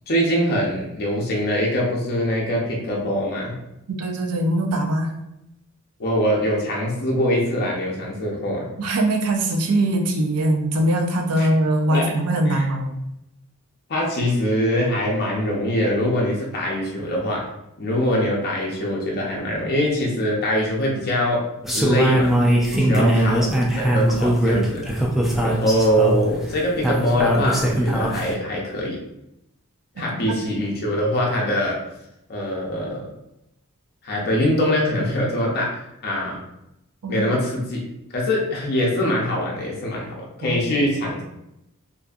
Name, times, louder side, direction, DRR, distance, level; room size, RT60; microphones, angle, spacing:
voice 1, 0.1-3.5 6.0-8.7 11.4-11.5 11.9-12.0 12.5-12.7 13.9-17.4 17.8-21.4 21.7-22.3 22.7-23.5 23.7-24.9 25.4-29.0 30.0-31.8 32.3-33.1 34.0-36.4 37.1-37.8 38.1-41.2, equal, 45° left, -2 dB, 0.5 m, -23 dB
voice 2, 3.9-5.1 8.8-13.0 22.7-23.1 30.0-30.3 37.0-37.3 40.4-40.9, right 1 dB, 85° right, 3 dB, 0.5 m, -22 dB
sound 1, 21.6-28.3, right 1 dB, ahead, 0.3 m, -20 dB
2.6 x 2.5 x 2.3 m, 0.85 s
head